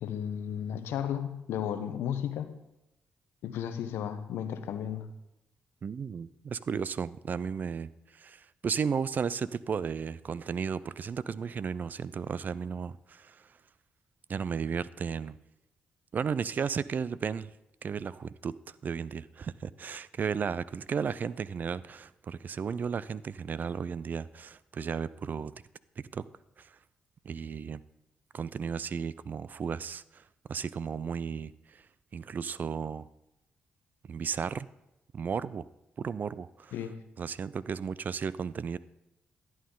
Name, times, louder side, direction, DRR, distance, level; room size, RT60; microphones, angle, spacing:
voice 1, 0.0-2.5 3.4-5.1 36.7-37.1, left 9 dB, 80° left, 10 dB, 0.8 m, -34 dB
voice 2, 5.8-13.4 14.3-15.4 16.1-17.5 17.8-18.5 18.8-25.5 26.0-26.2 26.6-26.7 27.2-27.8 28.3-30.2 30.5-31.8 32.1-33.1 34.1-34.7 35.1-35.7 36.0-36.7 37.2-38.8, right 6 dB, 50° right, 18 dB, 0.4 m, -34 dB
11.0 x 8.6 x 3.8 m, 0.90 s
supercardioid pair, 55°, 4 cm